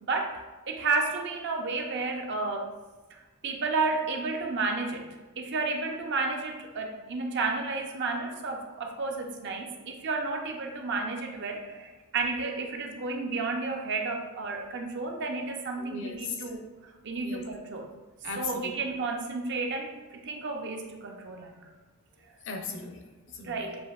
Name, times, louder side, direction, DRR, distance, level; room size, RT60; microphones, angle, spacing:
voice 1, 0.0-2.6 3.4-5.0 5.4-16.6 17.0-17.8 18.4-21.7 23.4-23.8, right 3 dB, 55° right, 2 dB, 0.6 m, -32 dB
voice 2, 15.8-16.6 17.2-17.4 18.2-18.7 22.4-23.7, left 4 dB, 60° left, 3 dB, 0.6 m, -38 dB
7.0 x 2.7 x 2.4 m, 1.2 s
head